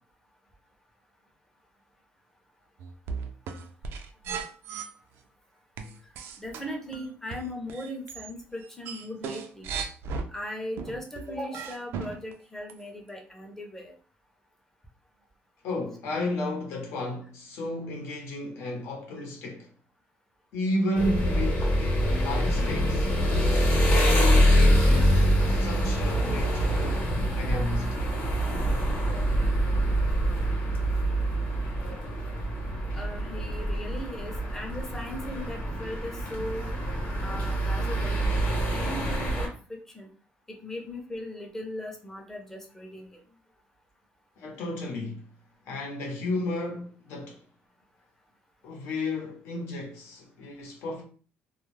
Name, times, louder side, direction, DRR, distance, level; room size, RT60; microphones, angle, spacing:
sound 1, 2.8-4.9 5.8-8.3 8.6-10.3 10.8-12.3 12.7-12.8, right 5 dB, 70° right, 0.3 m, -36 dB
voice 1, 6.4-9.7 10.3-13.9 32.9-36.7 37.2-39.5 39.9-40.1 40.5-43.2 44.5-44.6, left 1 dB, 10° left, 0.5 m, -38 dB
voice 2, 15.6-19.7 20.5-23.1 23.7-27.9 44.4-45.2 45.7-47.4 48.6-51.0, left 2 dB, 80° left, 0.8 m, -33 dB
sound 2, 21.0-39.5, equal, 45° left, 0.9 m, -25 dB
2.3 x 2.0 x 3.1 m
cardioid pair, 155°, 4 cm